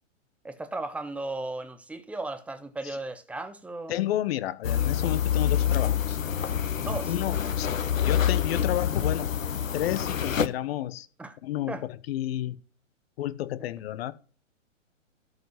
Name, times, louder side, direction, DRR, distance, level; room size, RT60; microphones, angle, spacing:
voice 1, 0.4-4.0 6.8-7.1 11.2-11.4 11.7-11.8, right 2 dB, 5° right, 0.6 m, -35 dB
voice 2, 3.9-6.2 7.1-9.3 9.7-11.1 11.4-12.6 13.2-14.1, left 13 dB, 50° left, 1.0 m, -31 dB
sound 1, 4.6-10.5, left 9 dB, 90° left, 0.9 m, -26 dB
12.5 x 4.9 x 6.4 m
hypercardioid pair, 125°, 39 cm